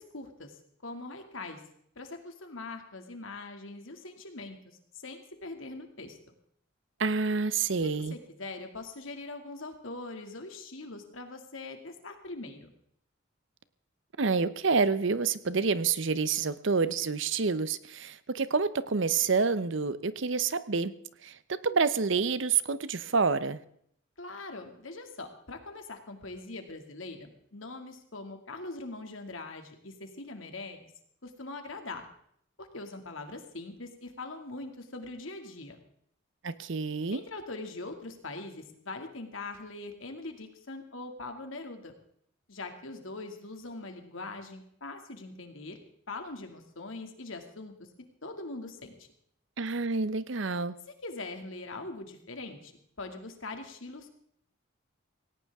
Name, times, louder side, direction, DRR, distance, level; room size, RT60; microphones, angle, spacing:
voice 1, 0.0-1.6 2.0-6.2 7.8-12.7 24.2-30.9 31.2-32.1 32.6-35.8 37.1-41.9 42.5-45.8 46.1-47.7 48.2-49.1 51.0-52.7 53.0-54.1, left 2 dB, 75° left, 5 dB, 2.4 m, -42 dB
voice 2, 7.0-8.1 14.2-20.9 21.2-23.6 36.4-37.2 49.6-50.7, right 4 dB, 65° right, 15 dB, 0.8 m, -28 dB
18.0 x 17.5 x 3.6 m, 0.67 s
head